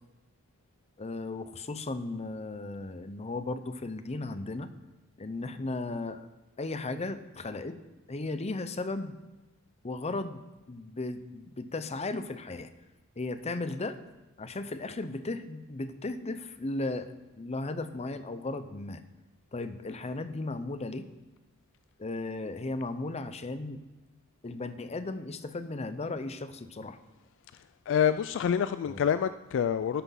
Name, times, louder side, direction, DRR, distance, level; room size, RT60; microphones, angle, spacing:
voice 1, 1.0-4.7 5.2-6.3 6.6-7.8 8.1-9.2 9.8-12.7 13.2-14.0 14.4-19.0 19.5-21.1 22.0-23.8 24.4-27.0 28.9-29.0, left 2 dB, 30° left, 11 dB, 0.6 m, -36 dB
voice 2, 27.9-30.0, left 8 dB, 60° left, 13 dB, 0.3 m, -27 dB
12.5 x 6.0 x 5.8 m, 1.1 s
head